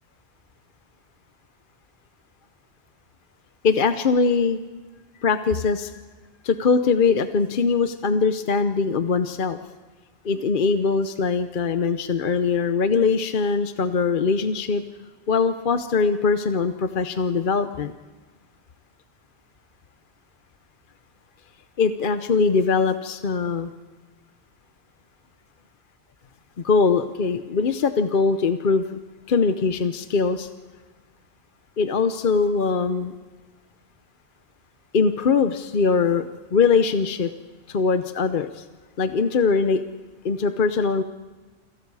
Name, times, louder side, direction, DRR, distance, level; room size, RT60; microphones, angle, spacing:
voice 1, 3.6-4.6 5.2-5.9 6.4-9.6 10.2-14.8 15.3-17.9 21.8-23.7 26.6-29.0 29.3-30.5 31.8-33.1 34.9-37.3 37.7-38.6 39.0-39.8 40.2-41.0, left 5 dB, 55° left, 9 dB, 1.0 m, -21 dB
29.0 x 26.5 x 4.8 m, 1.3 s
omnidirectional pair, 1.1 m